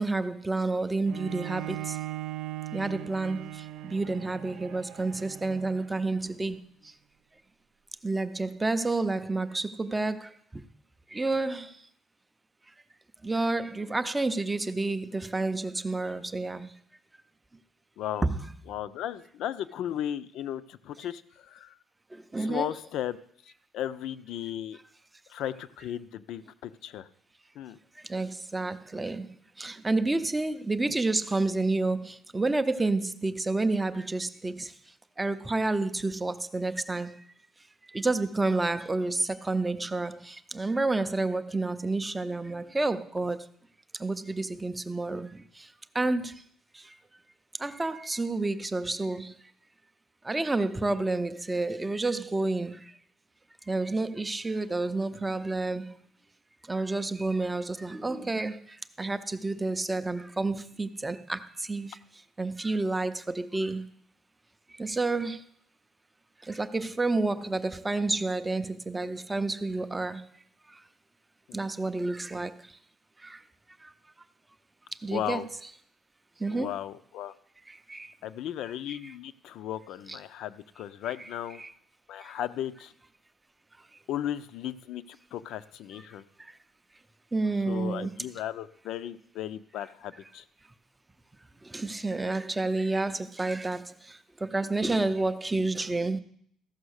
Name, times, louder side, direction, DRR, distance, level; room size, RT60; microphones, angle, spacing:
voice 1, 0.0-1.8 2.7-3.5 3.8-6.6 8.0-10.2 10.5-10.6 11.1-11.7 13.2-16.7 18.2-18.5 22.3-22.7 28.1-29.3 29.6-34.7 35.2-37.1 37.9-43.4 44.0-45.3 46.0-46.3 47.6-49.3 50.3-52.8 53.7-55.8 56.7-58.6 59.0-61.4 61.7-61.9 62.4-63.8 64.8-65.4 66.5-70.2 71.5-72.5 75.0-75.5 76.4-76.7 77.9-78.1 80.1-80.2 81.6-81.7 87.3-88.1 91.7-93.8 94.4-96.2, right 2 dB, 10° right, 0.5 m, -29 dB
Bowed string instrument, 1.1-6.3, right 15 dB, 80° right, 0.4 m, -39 dB
voice 2, 18.0-18.3 18.7-21.8 22.4-23.2 23.4-24.8 25.3-27.1 27.6-27.8 71.5-71.7 75.1-75.5 76.5-77.3 78.2-81.6 82.1-82.9 84.1-86.2 87.7-90.4, left 11 dB, 65° left, 0.5 m, -35 dB
14.5 x 6.0 x 6.4 m
cardioid pair, 160°, 0 cm